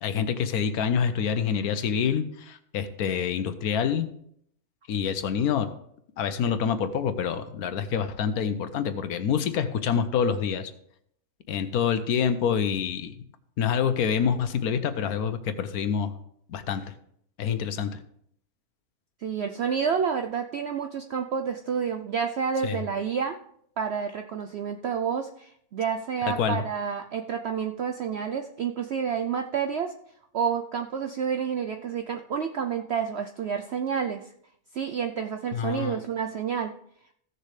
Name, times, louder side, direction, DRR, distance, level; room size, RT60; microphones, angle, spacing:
voice 1, 0.0-4.1 4.9-5.7 6.2-10.7 11.5-13.1 13.6-16.1 16.5-16.8 17.4-17.9 22.6-22.8 26.3-26.6 35.5-36.0, left 7 dB, 70° left, 10 dB, 1.2 m, -26 dB
voice 2, 19.2-23.4 23.8-29.9 30.3-34.3 34.7-36.7, right 7 dB, 70° right, 6 dB, 0.6 m, -29 dB
15.5 x 6.8 x 3.2 m, 0.69 s
omnidirectional pair, 1.7 m